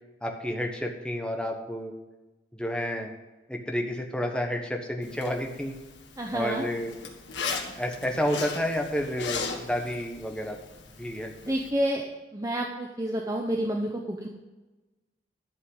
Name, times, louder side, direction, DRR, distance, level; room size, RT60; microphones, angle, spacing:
voice 1, 0.2-1.9 2.5-3.1 3.5-5.7 6.3-6.9 7.7-10.6 11.0-11.3, equal, 5° left, 2 dB, 1.1 m, -30 dB
Zipper (clothing), 5.0-11.7, left 5 dB, 70° left, 1.6 m, -38 dB
voice 2, 6.2-6.6 11.4-12.1 12.3-14.3, right 1 dB, 20° right, 1 dB, 0.8 m, -29 dB
12.0 x 5.5 x 8.0 m, 1.1 s
head